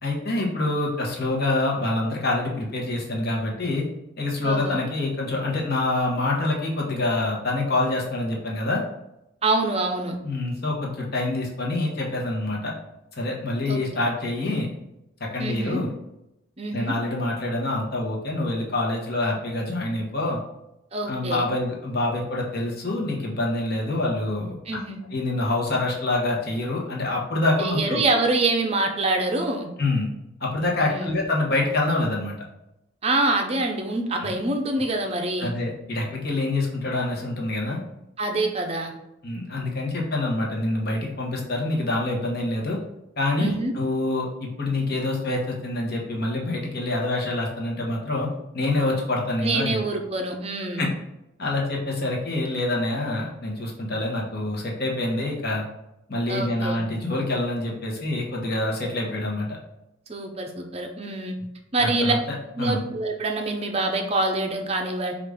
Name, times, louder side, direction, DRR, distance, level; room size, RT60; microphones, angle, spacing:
voice 1, 0.0-3.8 4.2-8.8 10.2-12.7 13.2-14.7 15.3-15.9 16.7-20.4 21.1-24.5 25.1-28.0 29.8-30.1 30.4-32.3 34.2-34.3 35.4-37.8 39.2-42.8 43.2-48.3 48.5-49.8 50.8-50.9 51.4-55.6 56.1-59.6 61.8-62.2 62.6-62.8, left 2 dB, 50° left, -2 dB, 1.0 m, -26 dB
voice 2, 4.4-4.8 9.4-10.2 13.7-13.8 15.4-15.8 16.6-16.9 20.9-21.5 24.7-25.0 27.6-29.7 30.8-31.2 33.0-35.5 38.2-38.9 43.4-43.7 49.4-50.9 56.3-56.8 60.1-61.3 61.7-62.1 62.6-65.1, right 2 dB, 30° right, 3 dB, 0.5 m, -25 dB
4.9 x 2.5 x 3.4 m, 0.87 s
head